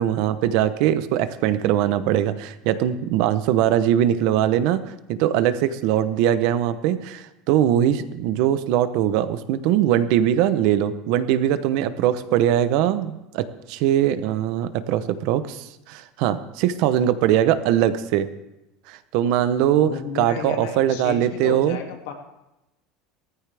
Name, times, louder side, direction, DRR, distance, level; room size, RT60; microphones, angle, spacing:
voice 1, 0.0-18.3 18.9-21.8, right 11 dB, 50° right, 13 dB, 0.7 m, -21 dB
voice 2, 19.8-22.1, left 7 dB, 85° left, 2 dB, 2.3 m, -33 dB
17.0 x 14.0 x 3.4 m, 0.94 s
cardioid pair, 180°, 0 cm